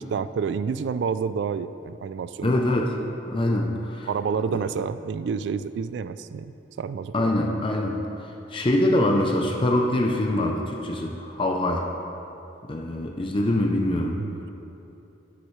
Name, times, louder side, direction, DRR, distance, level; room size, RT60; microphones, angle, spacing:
voice 1, 0.0-2.6 4.1-7.3 14.2-14.5, right 6 dB, 80° right, 13 dB, 0.3 m, -29 dB
voice 2, 2.4-2.9 3.3-4.1 7.1-11.9 12.7-14.2, left 1 dB, 30° left, 1 dB, 0.5 m, -24 dB
10.0 x 9.7 x 3.2 m, 3.0 s
head